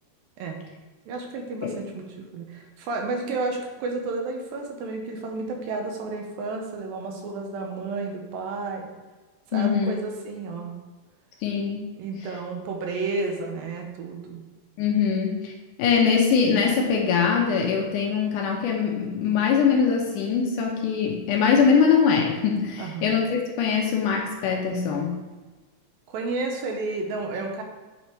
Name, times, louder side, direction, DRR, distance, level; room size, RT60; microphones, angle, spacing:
voice 1, 1.1-8.9 9.5-10.8 12.0-14.5 22.8-23.2 26.1-27.6, right 3 dB, 80° right, 2 dB, 2.7 m, -31 dB
voice 2, 9.5-10.0 11.4-11.9 14.8-15.5 15.8-25.2, left 6 dB, 75° left, 0 dB, 2.1 m, -22 dB
8.1 x 3.6 x 4.5 m, 1.3 s
omnidirectional pair, 4.1 m